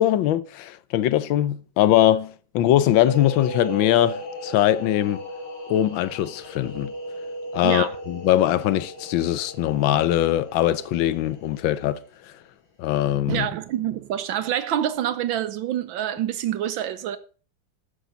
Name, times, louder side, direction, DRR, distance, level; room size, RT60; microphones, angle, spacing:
voice 1, 0.0-5.2 5.7-6.9 7.5-12.0 12.8-13.5, left 12 dB, 80° left, 1.5 m, -21 dB
sound 1, 2.7-12.3, left 1 dB, 65° left, 3.8 m, -37 dB
voice 2, 7.6-7.9 13.3-17.2, right 11 dB, 80° right, 1.5 m, -26 dB
13.0 x 10.0 x 4.0 m
omnidirectional pair, 2.1 m